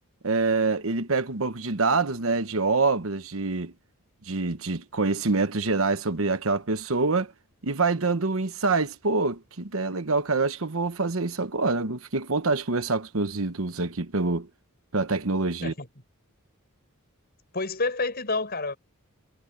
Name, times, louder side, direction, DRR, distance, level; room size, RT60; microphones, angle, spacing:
voice 1, 0.2-3.7 4.3-7.3 7.6-14.5 14.9-15.7, right 3 dB, 70° right, 1.2 m, -26 dB
voice 2, 17.5-18.8, left 3 dB, 45° left, 7.0 m, -28 dB
head